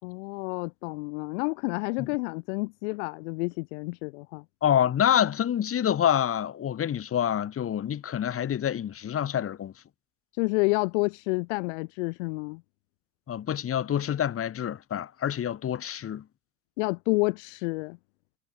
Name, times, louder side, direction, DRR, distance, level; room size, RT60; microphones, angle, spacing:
voice 1, 0.0-4.4 10.4-12.6 16.8-18.0, left 28 dB, 65° left, 3.3 m, -29 dB
voice 2, 4.6-9.7 13.3-16.2, left 9 dB, 35° left, 4.3 m, -27 dB
hypercardioid pair, 80°, 39 cm